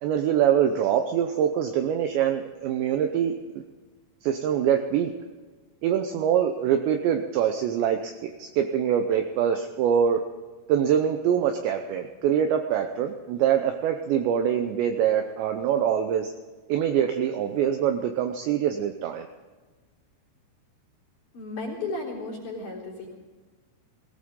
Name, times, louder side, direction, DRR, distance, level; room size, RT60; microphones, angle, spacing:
voice 1, 0.0-3.6 4.2-5.1 5.8-10.2 10.7-16.3 16.7-19.3, right 9 dB, 80° right, 6 dB, 2.6 m, -24 dB
voice 2, 21.3-23.2, left 2 dB, 40° left, -1 dB, 4.9 m, -34 dB
20.5 x 17.5 x 3.8 m, 1.3 s
omnidirectional pair, 5.9 m